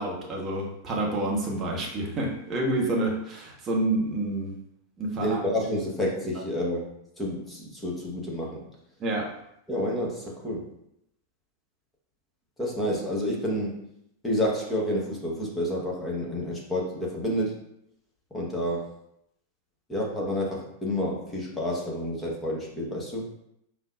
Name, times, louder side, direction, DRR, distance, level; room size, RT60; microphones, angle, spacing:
voice 1, 0.0-4.5 5.0-5.4 9.0-9.2, right 2 dB, 25° right, -2 dB, 0.8 m, -28 dB
voice 2, 5.1-6.9 7.2-8.6 9.7-10.7 12.6-13.8 14.2-17.6 18.3-18.9 19.9-23.3, equal, 10° left, -4 dB, 1.0 m, -29 dB
5.2 x 2.2 x 2.3 m, 0.77 s
figure-of-eight pair, 90°, 0 cm